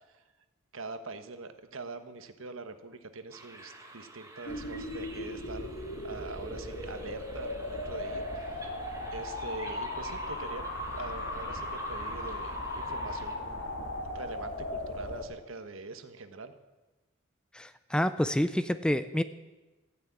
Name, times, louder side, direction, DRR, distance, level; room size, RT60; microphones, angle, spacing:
voice 1, 0.7-5.7 6.0-8.6 9.1-10.6 10.9-13.7 14.0-16.5, right 3 dB, 75° right, 9 dB, 1.2 m, -43 dB
sound 1, 3.3-13.4, right 2 dB, 15° right, 1.7 m, -51 dB
sound 2, 4.5-15.2, left 1 dB, 60° left, 3.0 m, -37 dB
voice 2, 17.5-19.2, equal, 5° left, 12 dB, 0.5 m, -28 dB
14.0 x 9.9 x 8.4 m, 1.1 s
head